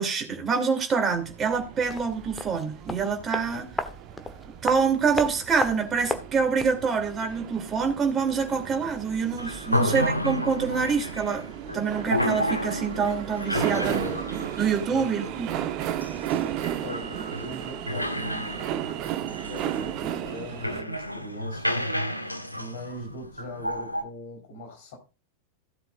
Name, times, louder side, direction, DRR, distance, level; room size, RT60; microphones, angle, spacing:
voice 1, 0.0-3.7 4.6-14.0 14.6-15.5, right 5 dB, 20° right, 2.9 m, -26 dB
sound 1, 1.1-20.8, right 11 dB, 40° right, 1.0 m, -35 dB
sound 2, 1.9-6.9 7.1-7.2, left 2 dB, 10° left, 1.2 m, -35 dB
sound 3, 9.4-24.0, left 1 dB, 90° left, 1.0 m, -31 dB
voice 2, 9.7-10.1 13.7-14.2 14.9-15.6 16.8-25.0, left 1 dB, 55° left, 4.2 m, -40 dB
16.0 x 7.8 x 2.5 m
figure-of-eight pair, 90°, 0 cm